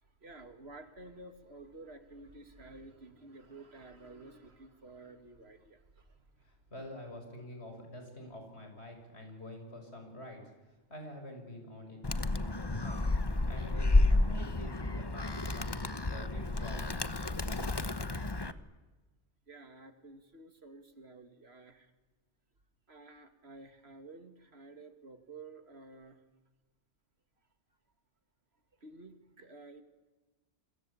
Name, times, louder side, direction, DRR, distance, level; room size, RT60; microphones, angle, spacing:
voice 1, 0.0-6.5 19.5-21.9 22.9-26.2 28.7-29.8, right 2 dB, 60° right, 8 dB, 2.7 m, -52 dB
voice 2, 6.4-10.4 10.9-12.0 12.2-13.1 13.5-17.0, left 1 dB, 65° left, 4 dB, 7.1 m, -47 dB
Animal, 12.0-18.5, left 2 dB, 20° left, 1.0 m, -31 dB
27.5 x 25.0 x 8.6 m, 1.2 s
omnidirectional pair, 1.2 m